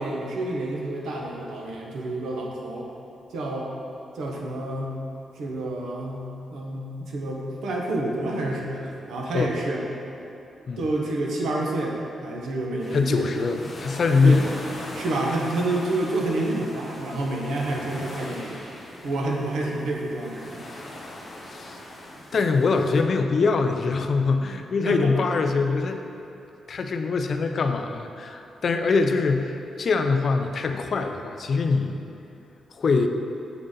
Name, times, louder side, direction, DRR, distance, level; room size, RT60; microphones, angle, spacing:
voice 1, 0.0-2.9 3.3-3.7 4.1-4.9 5.3-9.8 10.8-13.7 14.2-14.4 14.9-18.6 19.0-20.7 24.8-25.1, right 2 dB, 80° right, -1 dB, 0.9 m, -29 dB
sound 1, 12.8-23.0, left 1 dB, 25° left, 0.9 m, -40 dB
voice 2, 12.9-14.5 21.5-21.8 22.3-26.0 26.7-32.0 32.7-33.1, left 4 dB, 45° left, 6 dB, 0.3 m, -23 dB
7.7 x 3.9 x 3.7 m, 2.9 s
wide cardioid pair, 160°, 0 cm